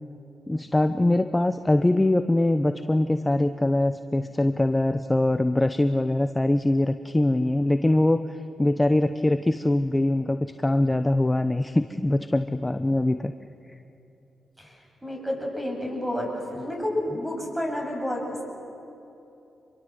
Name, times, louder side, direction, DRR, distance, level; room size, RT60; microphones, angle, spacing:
voice 1, 0.5-13.3, left 1 dB, 15° left, 10 dB, 0.8 m, -23 dB
voice 2, 15.0-18.4, left 1 dB, 5° right, 1 dB, 7.8 m, -30 dB
26.5 x 22.5 x 7.9 m, 2.9 s
cardioid pair, 65°, 0 cm